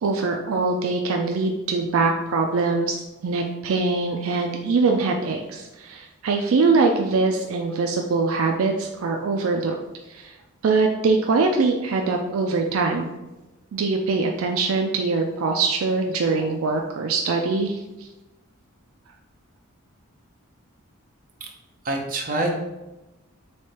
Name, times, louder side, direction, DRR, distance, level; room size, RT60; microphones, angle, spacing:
voice 1, 0.0-9.8 10.1-10.3 10.6-13.1 13.7-18.1, right 4 dB, 70° right, 2 dB, 0.4 m, -23 dB
voice 2, 21.8-22.6, right 2 dB, 40° right, 0 dB, 0.8 m, -25 dB
3.4 x 3.3 x 4.2 m, 1.0 s
head